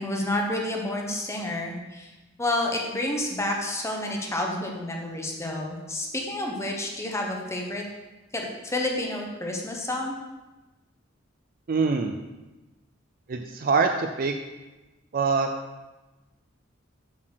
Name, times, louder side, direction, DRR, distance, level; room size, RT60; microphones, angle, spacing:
voice 1, 0.0-2.1 2.4-7.8 8.3-10.1, left 1 dB, 15° left, 0 dB, 1.1 m, -29 dB
voice 2, 11.7-12.1 13.3-14.3 15.1-15.5, right 4 dB, 45° right, 5 dB, 0.4 m, -24 dB
7.3 x 4.3 x 6.3 m, 1.1 s
head